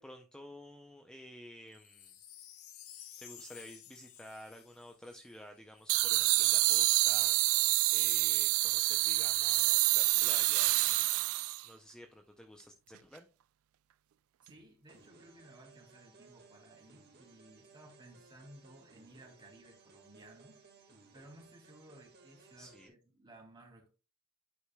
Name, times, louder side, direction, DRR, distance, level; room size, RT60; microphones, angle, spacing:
voice 1, 0.0-2.1 3.2-11.2 11.6-13.3 22.6-22.9, equal, 5° left, 0.5 m, -52 dB
Wind chime, 1.7-6.1 6.6-6.7, left 10 dB, 90° left, 1.1 m, -54 dB
sound 1, 5.9-11.7, right 19 dB, 70° right, 0.3 m, -27 dB
voice 2, 14.4-23.9, right 1 dB, 20° right, 2.5 m, -57 dB
sound 2, 14.9-22.9, right 4 dB, 50° right, 1.8 m, -61 dB
11.0 x 4.8 x 2.2 m
head